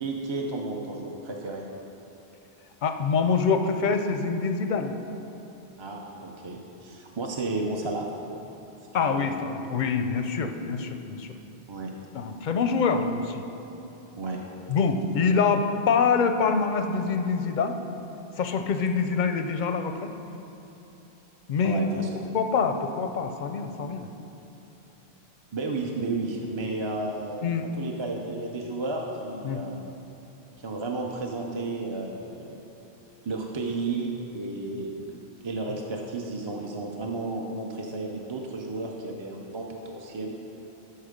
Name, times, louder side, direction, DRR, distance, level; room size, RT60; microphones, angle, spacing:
voice 1, 0.0-1.6 5.8-8.1 9.1-9.3 11.7-11.9 14.2-14.4 21.6-22.1 25.5-27.5 27.8-29.9 30.6-32.6 33.2-35.0 35.4-40.3, right 3 dB, 35° right, 0 dB, 0.5 m, -32 dB
voice 2, 2.8-5.0 8.9-11.4 12.1-13.4 14.7-17.8 18.4-19.9 21.5-21.9 22.3-24.1 27.4-27.6 29.4-29.6, left 5 dB, 55° left, 7 dB, 0.6 m, -25 dB
13.0 x 4.5 x 5.1 m, 2.9 s
omnidirectional pair, 1.1 m